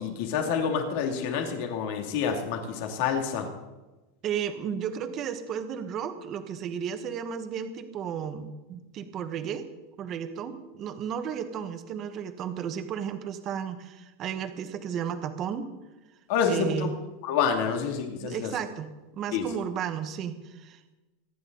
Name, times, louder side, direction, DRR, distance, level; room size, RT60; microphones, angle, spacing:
voice 1, 0.0-3.5 16.3-16.9 17.2-18.5 19.3-19.4, left 7 dB, 60° left, 3 dB, 2.7 m, -28 dB
voice 2, 4.2-9.7 10.0-15.7 16.5-17.0 18.2-20.9, right 8 dB, 35° right, 8 dB, 1.4 m, -33 dB
25.5 x 10.5 x 4.1 m, 1.1 s
supercardioid pair, 150°, 0 cm